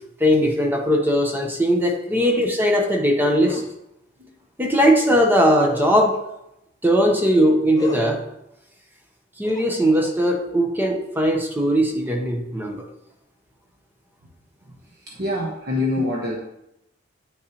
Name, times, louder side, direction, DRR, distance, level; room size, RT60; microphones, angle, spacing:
voice 1, 0.2-3.6 4.6-6.2 6.8-8.2 9.4-12.9, equal, 10° right, 2 dB, 0.9 m, -19 dB
sound 1, 3.4-3.7 5.7-6.1 7.7-8.1 9.4-10.1, left 3 dB, 20° left, 0.6 m, -38 dB
voice 2, 15.0-16.4, left 2 dB, 50° right, -2 dB, 1.0 m, -25 dB
9.3 x 6.5 x 2.9 m, 0.84 s
head